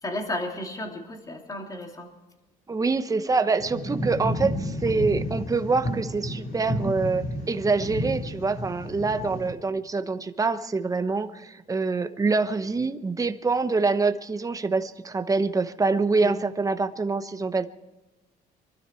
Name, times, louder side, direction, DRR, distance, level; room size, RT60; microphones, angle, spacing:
voice 1, 0.0-2.1 16.2-16.4, left 1 dB, 20° left, 2 dB, 3.0 m, -33 dB
voice 2, 2.7-17.7, right 4 dB, 20° right, 10 dB, 1.0 m, -25 dB
sound 1, 3.6-9.5, equal, 60° left, 4.1 m, -31 dB
23.5 x 13.0 x 4.5 m, 1.1 s
cardioid pair, 110°, 17 cm